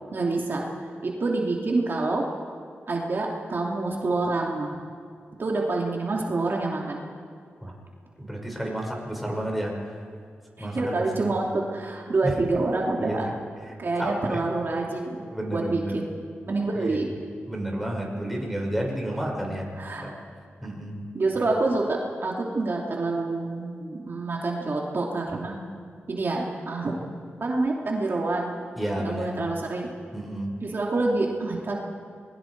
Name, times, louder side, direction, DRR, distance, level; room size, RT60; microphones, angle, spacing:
voice 1, 0.1-0.6 1.0-2.2 2.9-4.8 5.4-7.0 10.6-13.3 13.8-16.0 16.5-17.0 19.8-20.1 21.1-25.5 26.1-27.1 27.4-28.5 29.0-29.9 30.6-31.8, right 3 dB, 55° right, -1 dB, 2.9 m, -27 dB
voice 2, 8.2-10.0 10.6-11.3 12.2-12.3 13.0-13.3 13.7-14.5 15.3-16.0 16.8-17.0 17.5-19.7 20.0-20.1 20.6-21.0 28.8-29.4 30.1-30.5, right 1 dB, ahead, -1 dB, 5.3 m, -31 dB
28.0 x 21.0 x 4.7 m, 2.4 s
cardioid pair, 70°, 4 cm